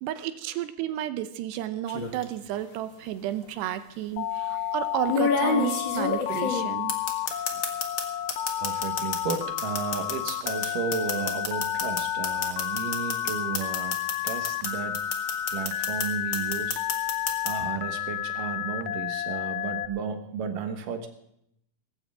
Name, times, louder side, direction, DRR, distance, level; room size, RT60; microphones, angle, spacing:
voice 1, 0.0-6.9, right 13 dB, 80° right, 11 dB, 2.9 m, -32 dB
sound 1, 1.9-2.2 3.4-3.5 5.1-8.0 8.3-14.7 14.9-16.1 16.3-17.5, left 5 dB, 55° left, 1.3 m, -28 dB
Telephone, 4.2-19.9, left 12 dB, 85° left, 1.9 m, -31 dB
voice 2, 7.3-7.6 8.6-15.0 15.5-16.8 17.4-21.1, right 6 dB, 65° right, 6 dB, 2.5 m, -34 dB
19.0 x 15.5 x 3.6 m, 0.75 s
omnidirectional pair, 5.0 m